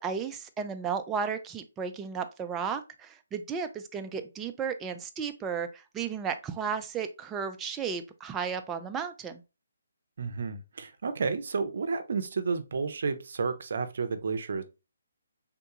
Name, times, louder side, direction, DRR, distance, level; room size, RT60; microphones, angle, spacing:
voice 1, 0.0-9.4, right 6 dB, 15° right, 0.4 m, -34 dB
voice 2, 10.2-14.6, right 4 dB, 60° right, 0.6 m, -31 dB
3.6 x 2.3 x 2.8 m
figure-of-eight pair, 145°, 0 cm